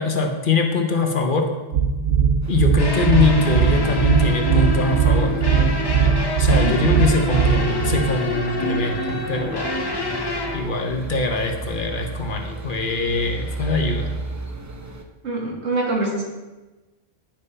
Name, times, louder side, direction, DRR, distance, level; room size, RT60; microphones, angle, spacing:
voice 1, 0.0-1.5 2.5-5.3 5.6-5.7 6.4-9.7 10.5-14.1, left 3 dB, 55° left, 3 dB, 0.9 m, -22 dB
sound 1, 1.7-8.1, right 7 dB, 70° right, 1.0 m, -19 dB
sound 2, 2.4-15.0, right 2 dB, 25° right, 0.4 m, -35 dB
sound 3, 2.8-10.6, left 1 dB, 25° left, 0.6 m, -26 dB
voice 2, 6.6-7.0 15.2-16.2, right 2 dB, 90° right, -2 dB, 1.9 m, -25 dB
10.0 x 5.5 x 3.2 m, 1.2 s
omnidirectional pair, 1.1 m